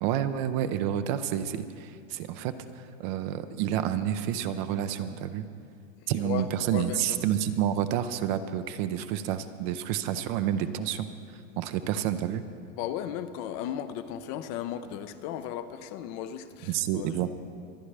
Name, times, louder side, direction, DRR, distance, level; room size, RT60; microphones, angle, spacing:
voice 1, 0.0-5.4 6.1-11.1 11.6-12.4 16.7-17.3, right 10 dB, 40° right, 11 dB, 0.6 m, -29 dB
voice 2, 6.2-7.2 12.7-17.2, left 10 dB, 35° left, 10 dB, 0.5 m, -36 dB
24.0 x 9.5 x 3.3 m, 2.3 s
supercardioid pair, 140°, 37 cm